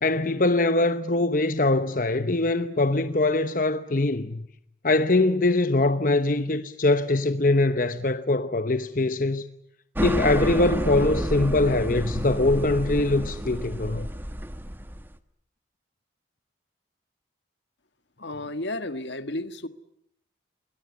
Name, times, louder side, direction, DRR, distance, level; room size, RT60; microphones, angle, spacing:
voice 1, 0.0-4.4 4.8-9.4 10.0-14.1, left 2 dB, 45° left, 1.0 m, -23 dB
sound 1, 10.0-15.2, equal, 10° right, 1.2 m, -30 dB
voice 2, 18.2-19.7, left 1 dB, 75° left, 1.8 m, -32 dB
28.5 x 22.0 x 8.4 m
head